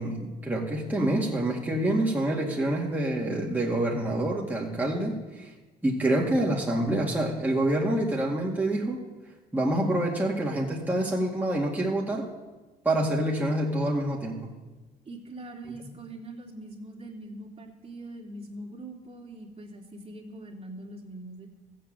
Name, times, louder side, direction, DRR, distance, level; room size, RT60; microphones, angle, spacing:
voice 1, 0.0-5.5 5.8-9.0 9.5-12.3 12.8-14.5, right 1 dB, 10° right, -3 dB, 2.2 m, -27 dB
voice 2, 15.0-21.5, right 1 dB, 35° right, -1 dB, 2.9 m, -42 dB
15.0 x 7.7 x 7.7 m, 1.2 s
cardioid pair, 80°, 18 cm